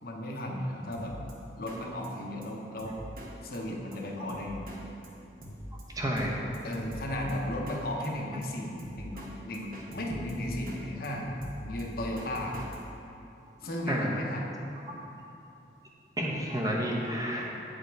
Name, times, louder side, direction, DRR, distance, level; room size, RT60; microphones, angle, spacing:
voice 1, 0.0-1.1 1.6-3.0 3.4-4.6 6.6-11.3 11.6-12.6 13.6-14.6, left 1 dB, 55° left, -1 dB, 0.8 m, -35 dB
Drum kit, 0.9-1.3 1.7-1.8 2.0-2.1 2.4-2.5 2.8-3.3 3.5-3.6 3.9-4.0 4.3-4.8 5.0-5.1 5.4-6.3 6.5-7.8 8.0-8.1 8.4-8.5 8.8-9.3 9.5-10.8 11.0-12.8, equal, 55° right, 1.1 m, -43 dB
voice 2, 5.9-6.5 9.2-9.3 13.9-14.2 14.9-15.0 16.2-17.5, equal, 20° right, -2 dB, 0.9 m, -30 dB
8.0 x 5.1 x 4.6 m, 2.8 s
head